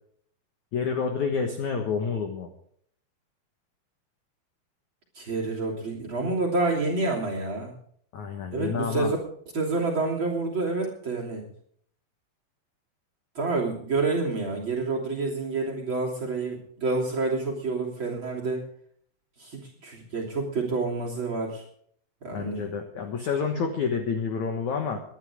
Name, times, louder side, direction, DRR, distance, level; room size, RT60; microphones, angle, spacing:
voice 1, 0.7-2.5 8.1-9.1 22.3-25.0, left 5 dB, 70° left, 5 dB, 1.8 m, -29 dB
voice 2, 5.1-7.7 8.5-9.2 9.5-11.4 13.3-18.6 19.4-21.6 22.2-22.6, right 3 dB, 30° right, -2 dB, 3.0 m, -28 dB
21.5 x 11.5 x 3.6 m, 0.62 s
omnidirectional pair, 5.6 m